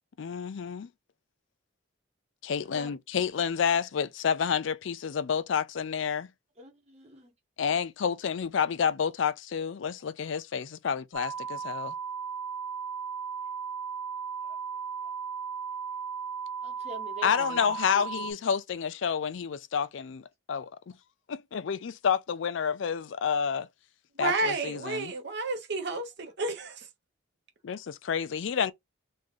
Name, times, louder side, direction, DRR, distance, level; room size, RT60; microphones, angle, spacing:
voice 1, 0.2-0.9 2.4-6.3 7.6-11.9 17.2-20.7 21.3-23.7 24.2-25.1 27.6-28.7, left 7 dB, 70° left, 0.4 m, -29 dB
voice 2, 2.6-3.0 6.6-7.3 14.4-14.6 15.0-15.1 16.6-18.1 24.8-25.0, right 2 dB, 35° right, 1.3 m, -46 dB
sound 1, 11.1-18.3, right 6 dB, 5° left, 0.6 m, -36 dB
voice 3, 24.2-26.9, right 3 dB, 60° right, 0.9 m, -31 dB
3.1 x 2.6 x 3.6 m
head